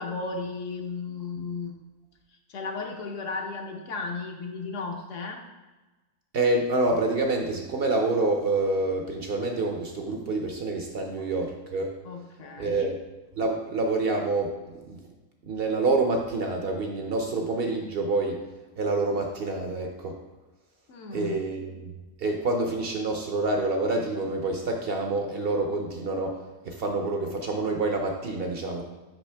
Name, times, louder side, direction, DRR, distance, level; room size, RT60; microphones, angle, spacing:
voice 1, 0.0-1.7 2.5-5.4 11.2-11.3 12.0-12.9 20.9-21.4, left 4 dB, 70° left, 2 dB, 1.1 m, -35 dB
voice 2, 6.3-11.9 12.6-12.9 13.4-15.0 15.4-18.4 18.8-20.2 21.1-21.9 22.2-28.8, right 2 dB, 55° right, 3 dB, 0.7 m, -27 dB
6.1 x 5.1 x 3.3 m, 1.2 s
omnidirectional pair, 1.4 m